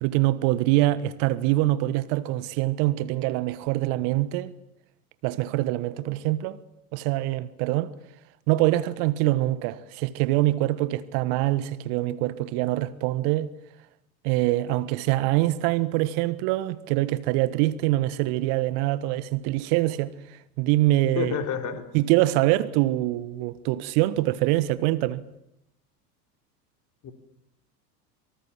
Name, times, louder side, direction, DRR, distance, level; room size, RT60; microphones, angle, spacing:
voice 1, 0.0-4.5 5.2-6.6 6.9-7.9 8.5-13.5 14.2-21.4 21.9-25.2, right 16 dB, 50° right, 1.5 m, -24 dB
voice 2, 21.2-21.8 27.0-27.1, left 8 dB, 40° left, 4.3 m, -29 dB
26.0 x 24.5 x 7.5 m
figure-of-eight pair, 80°, 47 cm